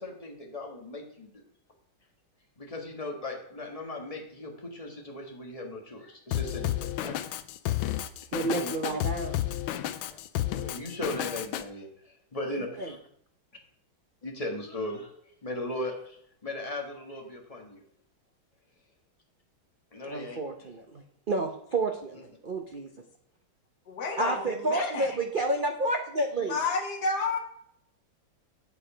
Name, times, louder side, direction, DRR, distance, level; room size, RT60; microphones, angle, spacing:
voice 1, 0.0-1.4 2.6-7.2 8.5-9.0 10.1-10.2 10.6-13.0 14.2-15.1 15.4-17.8 19.9-20.4, left 1 dB, 20° left, 0 dB, 1.6 m, -37 dB
Drum kit, 6.3-11.6, left 13 dB, 85° left, 1.4 m, -31 dB
voice 2, 8.3-9.4 12.8-12.9 20.1-22.9 24.2-26.6, right 2 dB, 75° right, 3 dB, 0.4 m, -30 dB
voice 3, 23.9-25.2 26.5-27.4, left 4 dB, 55° left, 0 dB, 2.2 m, -30 dB
8.3 x 8.2 x 5.0 m, 0.69 s
omnidirectional pair, 2.2 m